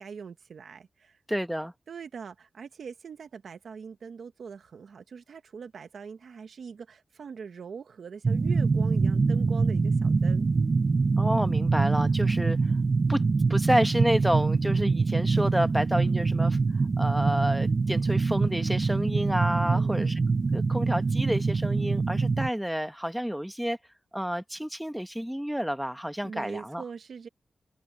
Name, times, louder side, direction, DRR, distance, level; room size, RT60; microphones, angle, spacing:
voice 1, 0.0-1.2 1.9-10.5 19.5-20.2 26.2-27.3, right 6 dB, 75° right, 1.1 m, -42 dB
voice 2, 1.3-1.7 11.2-12.7 13.1-13.2 13.5-16.6 17.0-20.2 20.5-23.8 24.1-26.8, equal, 5° right, 1.3 m, -29 dB
sound 1, 8.2-22.5, right 4 dB, 50° right, 0.7 m, -24 dB
open air
cardioid pair, 65°, 0 cm